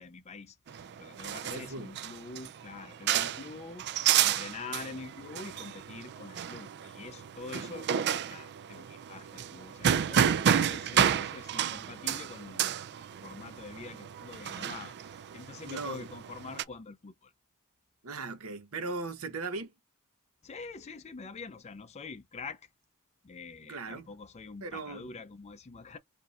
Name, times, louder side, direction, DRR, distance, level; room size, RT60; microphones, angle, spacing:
voice 1, 0.0-17.3 20.4-22.7 23.2-26.0, left 4 dB, 30° left, 0.5 m, -45 dB
sound 1, 0.7-16.6, right 9 dB, 50° right, 0.4 m, -31 dB
voice 2, 1.4-1.9 15.6-16.1 18.0-19.7 23.7-24.1 24.6-25.1, right 3 dB, 70° right, 0.9 m, -38 dB
4.7 x 2.7 x 2.4 m
head